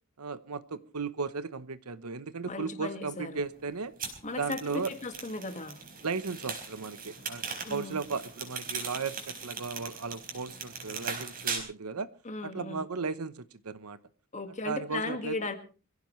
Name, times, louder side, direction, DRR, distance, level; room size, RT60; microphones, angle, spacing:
voice 1, 0.2-3.9 4.4-4.9 6.0-7.4 7.7-12.1 12.4-14.0 14.6-15.4, right 4 dB, 75° right, 1.0 m, -35 dB
voice 2, 2.5-3.4 4.2-5.8 7.6-8.0 12.2-12.8 14.3-15.6, left 2 dB, 35° left, 1.9 m, -36 dB
sound 1, 4.0-11.6, right 5 dB, 40° right, 4.3 m, -39 dB
23.5 x 16.0 x 3.2 m
head